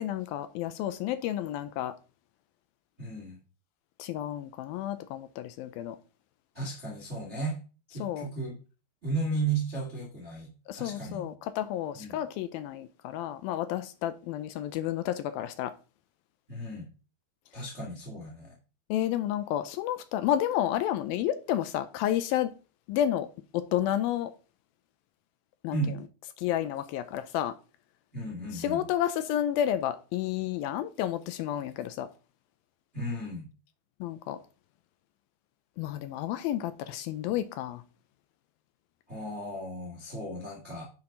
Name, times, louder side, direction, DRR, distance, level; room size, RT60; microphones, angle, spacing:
voice 1, 0.0-1.9 4.0-6.0 8.0-8.3 10.7-15.7 18.9-22.5 22.9-23.3 23.5-24.3 25.6-25.8 26.4-27.5 28.5-32.1 34.0-34.4 35.8-37.8, left 11 dB, 80° left, 2.3 m, -31 dB
voice 2, 3.0-3.4 6.5-7.6 7.9-8.6 9.0-11.3 11.9-12.2 16.5-16.9 17.5-18.6 25.7-26.0 28.1-28.8 32.9-33.5 39.1-40.8, right 3 dB, 40° right, 0.9 m, -34 dB
10.5 x 5.8 x 3.8 m
omnidirectional pair, 4.5 m